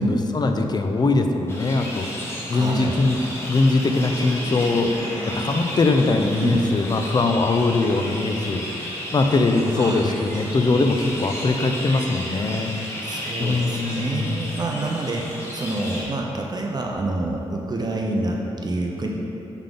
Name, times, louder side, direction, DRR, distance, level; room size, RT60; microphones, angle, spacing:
voice 1, 0.0-4.9 5.3-8.6 9.1-12.7 13.4-14.5, left 3 dB, 40° left, 5 dB, 0.5 m, -21 dB
sound 1, 1.5-16.0, left 1 dB, 25° left, 1.4 m, -33 dB
voice 2, 2.5-3.0 6.2-6.6 9.8-10.3 13.0-19.1, right 2 dB, 40° right, 0 dB, 0.6 m, -27 dB
5.7 x 3.6 x 5.2 m, 3.0 s
cardioid pair, 75°, 11 cm